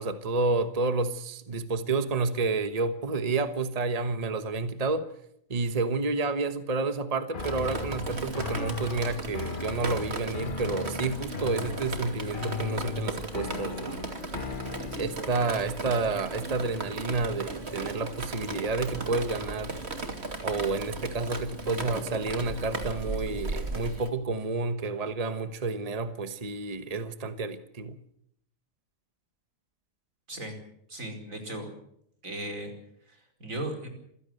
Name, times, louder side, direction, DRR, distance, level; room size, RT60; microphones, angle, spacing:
voice 1, 0.0-5.1 5.5-14.0 15.0-19.8 20.4-27.9, right 3 dB, 30° right, 1.3 m, -30 dB
sound 1, 7.3-15.4, left 5 dB, 40° left, 1.2 m, -37 dB
Drip, 7.4-24.1, right 3 dB, 55° right, 2.9 m, -36 dB
voice 2, 30.9-31.7 32.2-32.7 33.1-33.9, right 1 dB, 85° right, 5.3 m, -36 dB
27.0 x 16.0 x 8.0 m
omnidirectional pair, 1.4 m